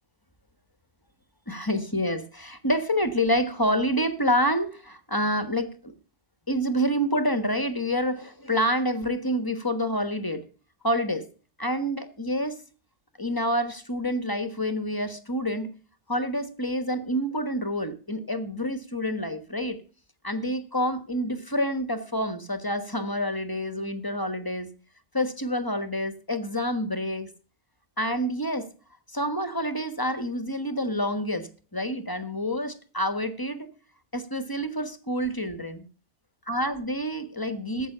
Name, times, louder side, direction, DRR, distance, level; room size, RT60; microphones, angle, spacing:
voice 1, 1.5-5.9 6.5-10.5 10.8-11.2 11.6-12.6 13.2-15.7 16.1-19.8 20.2-24.7 25.1-27.3 28.0-28.7 29.1-33.7 34.1-35.8 36.5-37.9, equal, 20° left, 1.2 m, -28 dB
13.5 x 8.0 x 6.7 m
omnidirectional pair, 1.2 m